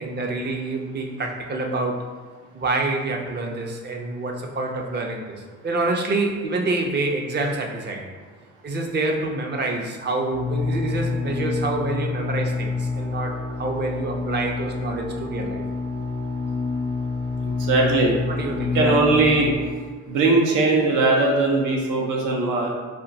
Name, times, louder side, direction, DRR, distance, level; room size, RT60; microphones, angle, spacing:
voice 1, 0.0-2.1 2.5-8.1 8.6-15.6 18.3-19.0, right 2 dB, 35° right, 1 dB, 0.5 m, -27 dB
sound 1, 10.3-19.7, left 4 dB, 20° left, 0.4 m, -28 dB
voice 2, 17.4-18.1 18.5-19.5 20.1-22.7, right 3 dB, 85° right, -1 dB, 0.7 m, -20 dB
2.6 x 2.2 x 3.8 m, 1.5 s
cardioid pair, 90°, 30 cm